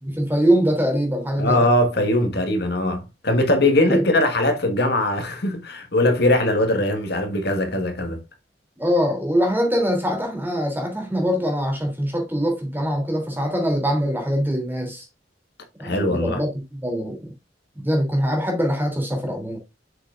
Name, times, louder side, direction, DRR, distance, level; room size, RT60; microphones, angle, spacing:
voice 1, 0.0-1.6 3.9-4.0 8.8-15.0 15.8-16.5 16.8-17.3 17.8-19.6, equal, 10° right, 3.0 m, -23 dB
voice 2, 1.4-8.2 15.8-16.4, left 1 dB, 65° left, 1.7 m, -21 dB
7.6 x 6.5 x 2.5 m
head